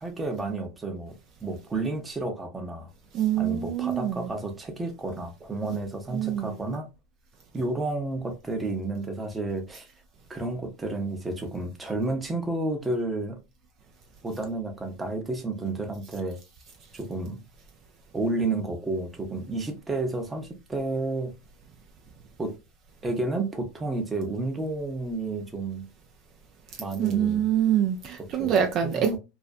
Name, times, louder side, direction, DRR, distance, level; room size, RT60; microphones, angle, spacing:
voice 1, 0.0-2.9 3.4-6.9 7.5-9.9 10.3-13.4 14.2-16.4 16.9-17.4 18.1-21.4 22.4-22.5 23.0-25.8 26.8-27.4 28.3-29.2, right 2 dB, 15° right, 0.7 m, -31 dB
voice 2, 3.1-4.3 5.7-5.8 6.1-6.6 27.0-29.2, right 9 dB, 45° right, 0.4 m, -25 dB
2.4 x 2.1 x 2.4 m
hypercardioid pair, 100°, 0 cm